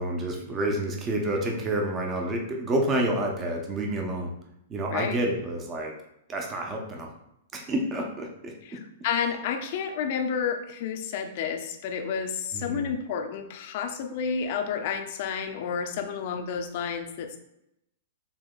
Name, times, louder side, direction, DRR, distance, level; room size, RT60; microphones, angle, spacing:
voice 1, 0.0-4.3 4.7-5.9 6.3-7.1 7.5-8.8 12.5-12.9, right 1 dB, 25° right, 1 dB, 0.7 m, -29 dB
voice 2, 8.6-17.4, left 7 dB, 50° left, 6 dB, 0.5 m, -30 dB
7.0 x 2.8 x 2.3 m, 0.82 s
figure-of-eight pair, 105°, 0 cm